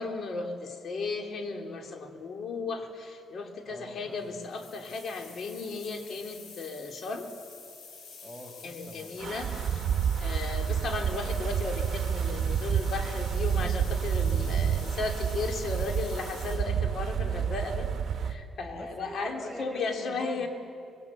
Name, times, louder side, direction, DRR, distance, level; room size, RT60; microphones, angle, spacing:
voice 1, 0.0-7.3 8.6-9.8 10.2-17.9 18.2-20.5, left 3 dB, 55° left, 4 dB, 2.6 m, -35 dB
voice 2, 3.6-4.4 8.2-9.2 18.7-20.5, right 1 dB, 10° left, 4 dB, 5.0 m, -43 dB
sound 1, 4.1-16.6, left 4 dB, 85° left, 6.7 m, -48 dB
Wind, 9.2-18.4, right 8 dB, 60° right, 1.2 m, -29 dB
21.0 x 19.5 x 8.2 m, 2.5 s
cardioid pair, 90°, 0 cm